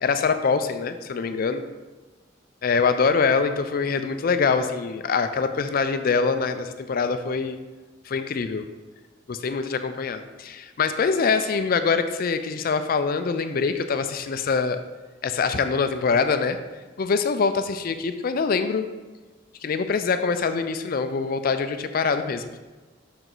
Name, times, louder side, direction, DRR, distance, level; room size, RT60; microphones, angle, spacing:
voice 1, 0.0-1.6 2.6-7.6 8.1-8.7 9.3-14.8 15.2-16.6 17.0-18.9 19.6-22.4, left 5 dB, 50° left, 9 dB, 0.4 m, -24 dB
6.4 x 4.6 x 3.9 m, 1.3 s
head